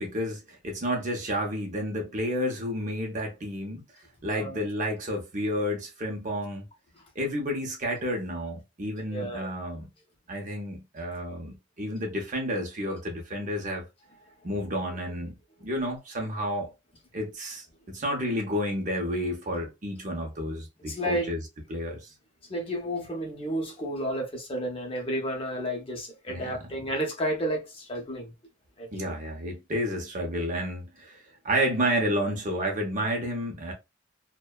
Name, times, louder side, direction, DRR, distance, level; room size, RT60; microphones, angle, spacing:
voice 1, 0.0-3.8 4.2-6.7 7.2-9.9 10.3-13.9 14.4-15.3 15.6-16.7 17.1-21.4 21.7-22.1 26.3-26.6 28.9-33.7, equal, 40° right, 0.6 m, -31 dB
voice 2, 9.1-9.5 14.5-14.6 20.9-21.3 22.5-28.3 28.8-29.1, equal, 25° left, 0.7 m, -31 dB
2.6 x 2.1 x 2.2 m
head